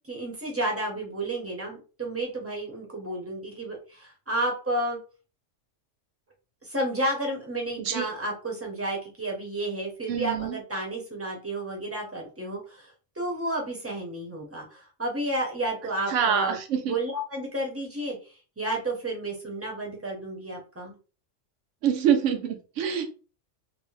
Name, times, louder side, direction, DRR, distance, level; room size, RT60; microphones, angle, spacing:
voice 1, 0.1-5.0 6.6-16.6 16.8-21.0, right 1 dB, 15° right, -1 dB, 0.6 m, -31 dB
voice 2, 10.1-10.6 16.1-17.0 21.8-23.0, right 8 dB, 75° right, 6 dB, 1.0 m, -25 dB
2.7 x 2.1 x 3.1 m, 0.35 s
omnidirectional pair, 1.3 m